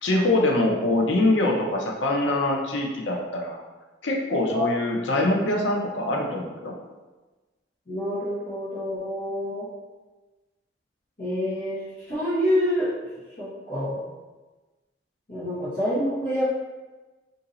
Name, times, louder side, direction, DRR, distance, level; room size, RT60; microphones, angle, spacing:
voice 1, 0.0-3.6 4.0-6.7, left 2 dB, 85° left, 0 dB, 0.6 m, -24 dB
voice 2, 7.9-9.6 11.2-11.8 12.1-12.8 13.4-14.0 15.3-16.4, equal, 50° left, -13 dB, 1.2 m, -27 dB
2.8 x 2.7 x 3.8 m, 1.2 s
head